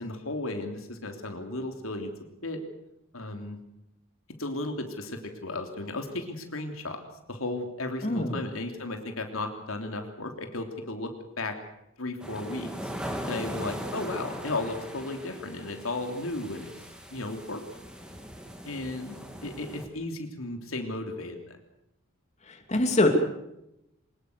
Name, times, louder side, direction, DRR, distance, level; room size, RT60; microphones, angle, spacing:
voice 1, 0.0-2.1 2.4-2.6 3.1-3.6 4.4-7.0 7.3-11.6 12.0-12.9 13.3-16.7 17.1-17.6 18.6-21.6, left 2 dB, 80° left, 5 dB, 3.2 m, -34 dB
voice 2, 8.0-8.3 22.5-23.1, left 2 dB, 35° left, 4 dB, 3.0 m, -24 dB
sound 1, 12.2-19.9, equal, 5° right, 3.0 m, -39 dB
23.5 x 21.0 x 6.8 m, 0.84 s
head